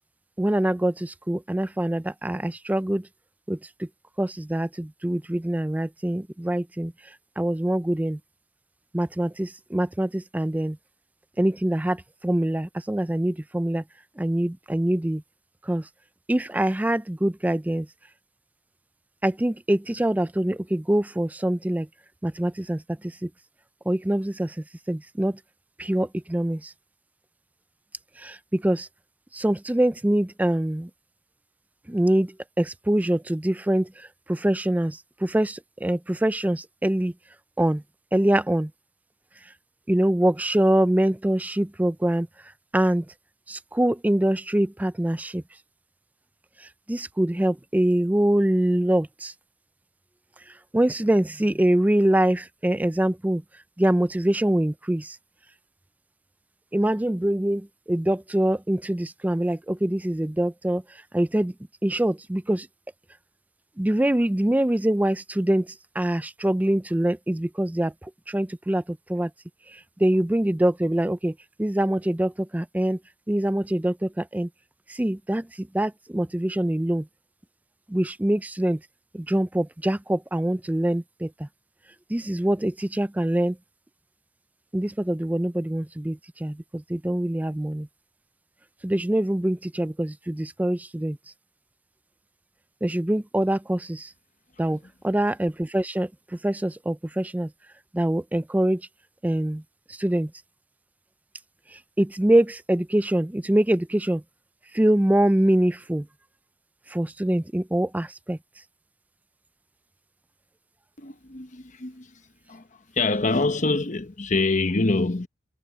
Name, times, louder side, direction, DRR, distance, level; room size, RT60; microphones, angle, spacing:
voice 1, 0.4-3.1 3.5-3.9 4.2-8.2 8.9-10.8 11.4-13.8 14.2-15.2 15.6-15.9 16.3-17.9 19.2-21.9 22.2-23.3 23.9-25.4 25.8-26.7 28.2-28.9 29.3-30.9 31.9-37.1 37.6-37.8 38.1-38.7 39.4-39.5 39.9-42.3 42.7-43.1 43.5-45.4 46.6-49.3 50.5-53.4 53.8-55.2 56.7-61.5 61.8-62.7 63.8-69.3 69.7-73.0 73.3-74.5 74.9-77.1 77.9-78.8 79.1-81.5 82.1-83.6 84.7-87.9 88.8-91.2 92.8-94.1 94.6-97.5 97.9-98.9 99.2-99.6 99.9-100.3 101.7-104.2 104.7-106.1 106.9-108.4, right 1 dB, 10° right, 0.4 m, -24 dB
voice 2, 111.0-112.2 112.5-115.3, left 3 dB, 40° left, 1.0 m, -25 dB
head